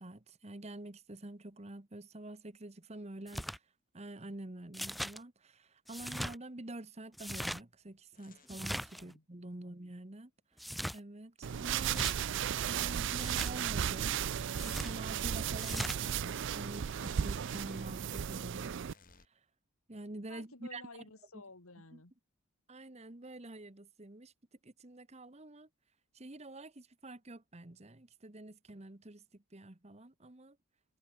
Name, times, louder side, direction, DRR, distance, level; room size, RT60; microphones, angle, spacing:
voice 1, 0.0-3.6 3.9-10.6 10.9-12.1 12.7-14.2 14.6-18.8 19.3-19.4 19.9-20.8 21.9-22.0 22.7-24.3 24.6-25.7 26.1-30.6, right 1 dB, 30° right, 1.2 m, -47 dB
sound 1, 3.3-3.6 4.7-5.2 5.9-6.3 7.1-7.6 8.5-9.0 10.6-11.0 11.8-12.1 13.2-13.5 14.6-14.9 15.6-16.0, equal, ahead, 0.5 m, -39 dB
sound 2, 7.2-7.4 8.1-8.5 11.4-14.0 16.8-19.3, left 4 dB, 40° left, 4.2 m, -65 dB
dry with towel, 11.4-18.9, right 8 dB, 55° right, 0.4 m, -35 dB
voice 2, 20.3-22.1, left 3 dB, 75° left, 2.6 m, -53 dB
head